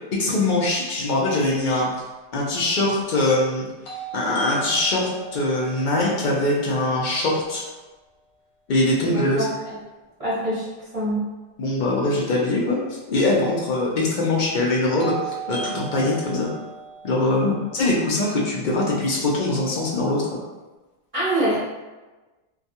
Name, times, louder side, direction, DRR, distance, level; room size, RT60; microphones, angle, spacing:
voice 1, 0.2-1.9 2.3-3.7 4.1-7.6 8.7-9.5 11.6-12.8 13.1-16.5 17.0-20.4, left 2 dB, 55° left, -3 dB, 0.6 m, -22 dB
sound 1, 3.8-7.8 15.0-19.0, right 5 dB, 80° left, 0.9 m, -38 dB
voice 2, 10.2-10.6 10.9-11.2 21.1-21.6, right 1 dB, 35° right, -9 dB, 0.8 m, -23 dB
2.3 x 2.2 x 2.7 m, 1.2 s
omnidirectional pair, 1.1 m